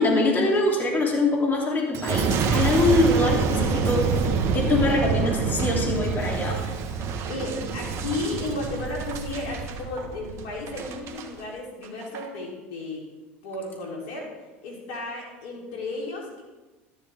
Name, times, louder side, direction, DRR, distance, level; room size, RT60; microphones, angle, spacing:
voice 1, 0.0-4.2 4.5-6.6, left 2 dB, 30° left, -1 dB, 3.3 m, -23 dB
Boom, 1.9-11.3 11.8-12.3, right 5 dB, 45° right, 1.4 m, -27 dB
voice 2, 7.0-13.0 13.4-14.3 14.6-16.4, left 2 dB, 70° left, -2 dB, 3.7 m, -34 dB
13.5 x 12.0 x 3.7 m, 1.2 s
hypercardioid pair, 85°, 6 cm